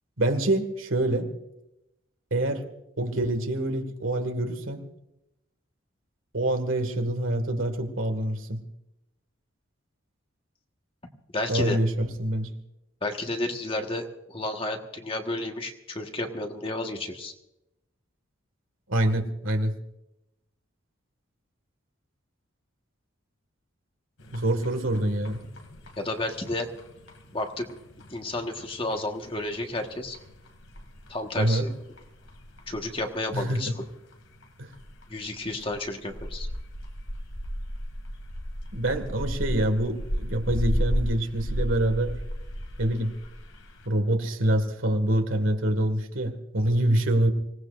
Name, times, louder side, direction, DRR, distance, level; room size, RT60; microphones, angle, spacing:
voice 1, 0.2-1.3 2.3-2.6 3.0-4.8 6.3-8.6 11.5-12.5 18.9-19.7 24.3-25.4 31.4-31.7 33.3-33.7 34.6-34.7 38.7-42.1 42.8-43.1 43.9-47.3, right 1 dB, 80° right, 6 dB, 1.9 m, -26 dB
voice 2, 11.3-11.8 13.0-17.3 26.0-26.7 27.3-27.7 28.1-30.2 31.1-31.7 32.7-33.8 35.1-36.5, left 2 dB, 25° left, 3 dB, 1.4 m, -31 dB
sound 1, 24.2-43.9, equal, 80° left, 2.5 m, -35 dB
25.5 x 17.5 x 2.6 m, 0.85 s
head